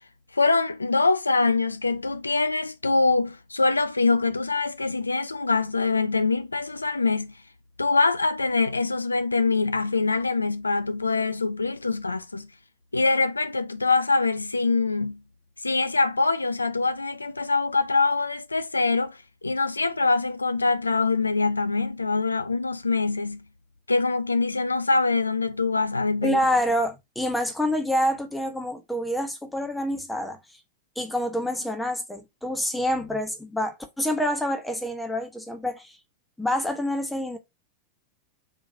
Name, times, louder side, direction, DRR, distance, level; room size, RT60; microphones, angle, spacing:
voice 1, 0.3-7.3 7.8-12.5 12.9-15.2 15.6-23.4 23.9-26.4, left 3 dB, 80° left, 0.3 m, -24 dB
voice 2, 26.2-30.4 31.0-36.0 36.4-37.4, equal, 5° left, 0.9 m, -27 dB
4.0 x 3.0 x 3.6 m
figure-of-eight pair, 90°, 0 cm